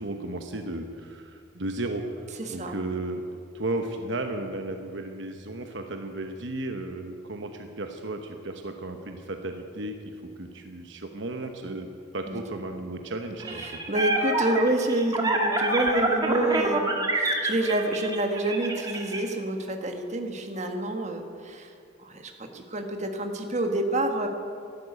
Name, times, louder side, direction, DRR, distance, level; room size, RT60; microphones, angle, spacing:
voice 1, 0.0-2.2 2.5-3.2 3.5-13.6, right 2 dB, 65° right, 5 dB, 1.0 m, -34 dB
voice 2, 2.4-2.7 12.3-12.4 13.4-21.7 22.0-24.3, right 1 dB, 35° right, 4 dB, 1.5 m, -28 dB
sound 1, 13.4-19.2, right 2 dB, 20° right, 1.7 m, -27 dB
12.5 x 12.0 x 9.3 m, 2.5 s
head